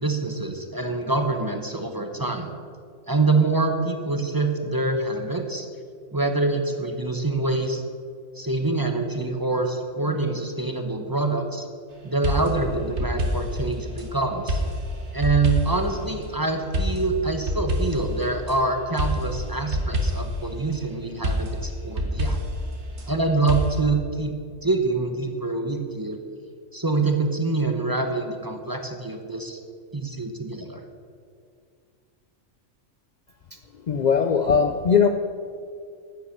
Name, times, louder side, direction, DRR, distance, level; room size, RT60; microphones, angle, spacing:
voice 1, 0.0-2.5 3.1-5.7 6.1-7.8 8.3-11.6 12.0-14.6 15.1-22.4 23.1-24.3 24.6-26.2 26.7-29.6 29.9-30.8, right 3 dB, 20° right, 4 dB, 0.8 m, -25 dB
sound 1, 12.2-14.1 14.5-15.9 16.7-18.6 19.0-20.4 21.2-23.1 23.5-23.8, equal, 55° right, 1.7 m, -27 dB
voice 2, 33.9-35.1, left 6 dB, 80° left, 6 dB, 0.4 m, -19 dB
10.0 x 9.0 x 6.6 m, 2.2 s
omnidirectional pair, 1.4 m